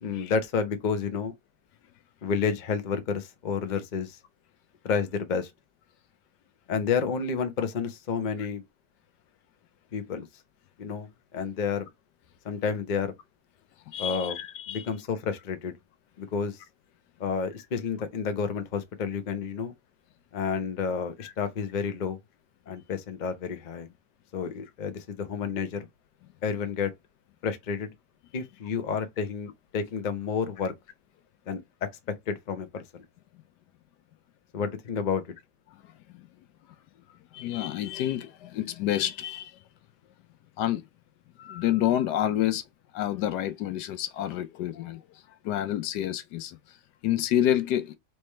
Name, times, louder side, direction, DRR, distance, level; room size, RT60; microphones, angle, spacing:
voice 1, 0.0-1.3 2.2-4.2 4.8-5.5 6.7-8.6 9.9-10.3 10.8-11.9 12.4-13.1 14.0-14.4 14.7-15.8 16.2-16.6 17.2-19.7 20.3-22.2 22.7-23.9 24.3-25.9 26.4-26.9 27.4-27.9 28.3-30.7 31.5-31.6 32.3-33.0 34.5-35.2, left 6 dB, 40° left, 0.6 m, -30 dB
voice 2, 13.9-14.9 35.7-35.8 36.1-36.3 37.3-39.5 40.6-40.8 41.4-42.6 42.9-45.0 45.4-46.6 47.0-48.0, left 12 dB, 80° left, 1.2 m, -28 dB
3.4 x 3.3 x 4.3 m
omnidirectional pair, 1.8 m